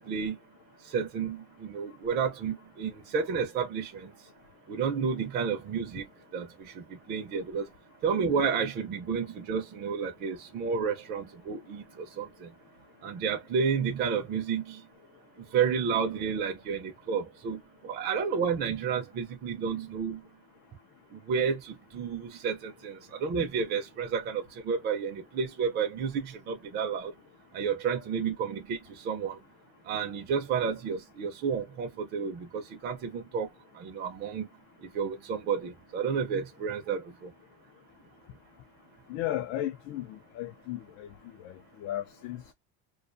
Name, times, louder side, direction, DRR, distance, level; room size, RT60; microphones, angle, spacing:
voice 1, 0.9-4.1 4.7-6.0 6.3-7.7 8.0-12.5 13.0-14.8 15.5-17.6 17.8-20.2 21.1-27.1 27.5-28.8 29.0-29.4 29.9-33.5 33.8-34.5 34.9-37.3, right 6 dB, 30° right, 0.6 m, -31 dB
voice 2, 39.1-41.1 41.4-41.5 41.8-42.5, left 13 dB, 50° left, 0.4 m, -35 dB
2.4 x 2.3 x 2.5 m
cardioid pair, 150°, 32 cm